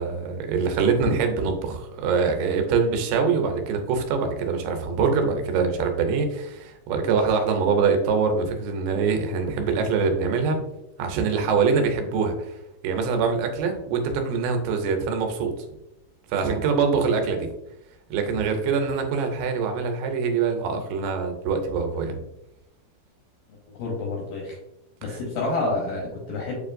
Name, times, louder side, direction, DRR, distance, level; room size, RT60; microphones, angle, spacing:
voice 1, 0.0-10.6 11.0-12.6 12.8-15.5 16.3-17.5 18.1-22.2 25.1-25.2, right 5 dB, 85° right, 4 dB, 2.7 m, -24 dB
voice 2, 23.7-24.6 25.0-26.6, left 2 dB, 75° left, -2 dB, 2.0 m, -28 dB
7.1 x 2.5 x 2.5 m, 0.87 s
omnidirectional pair, 4.7 m